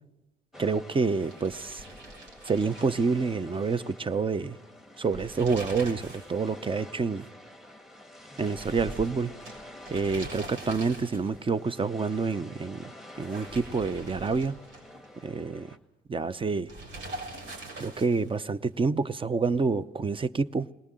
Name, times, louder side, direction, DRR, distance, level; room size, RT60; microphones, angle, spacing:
sound 1, 0.5-15.8, left 1 dB, ahead, 1.8 m, -48 dB
voice 1, 0.6-1.9 2.4-4.6 5.0-7.3 8.4-9.3 9.9-14.6 15.2-15.8 16.1-16.7 17.8-20.7, right 4 dB, 25° right, 0.7 m, -28 dB
sound 2, 1.1-3.6 3.9-4.0 5.0-6.4 6.7-6.8 8.4-11.5 13.1-15.1 16.7-18.4, right 1 dB, 75° right, 6.6 m, -43 dB
21.0 x 18.5 x 7.6 m
cardioid pair, 90°, 20 cm